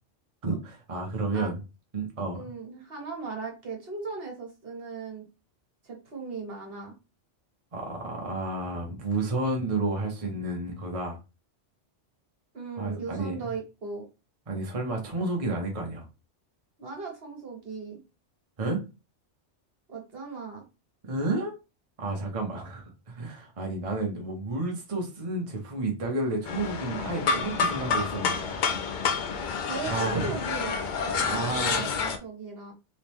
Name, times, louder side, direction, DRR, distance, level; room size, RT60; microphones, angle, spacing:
voice 1, 0.4-1.6 1.9-2.4 7.7-11.2 12.8-13.3 14.5-16.0 18.6-18.8 21.0-21.5 22.0-29.4 29.8-30.3 31.2-31.9, right 2 dB, 30° right, 0.9 m, -31 dB
voice 2, 2.3-5.2 5.8-6.9 12.5-14.1 16.8-18.0 19.9-20.6 29.7-32.7, right 4 dB, 55° right, 1.3 m, -37 dB
trommeln auf töpfen, 26.5-32.2, left 5 dB, 55° left, 0.6 m, -29 dB
3.6 x 3.1 x 3.0 m
omnidirectional pair, 1.2 m